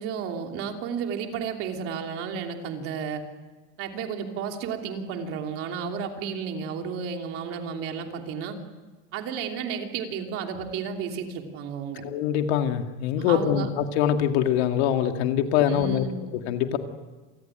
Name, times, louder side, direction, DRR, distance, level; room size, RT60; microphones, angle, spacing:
voice 1, 0.0-3.2 3.8-8.6 9.1-12.0 13.2-13.7 15.7-16.2, right 6 dB, 45° right, 3 dB, 3.0 m, -32 dB
voice 2, 12.0-16.0 16.3-16.8, left 9 dB, 90° left, 5 dB, 2.4 m, -24 dB
28.0 x 20.0 x 9.1 m, 1.3 s
cardioid pair, 175°, 32 cm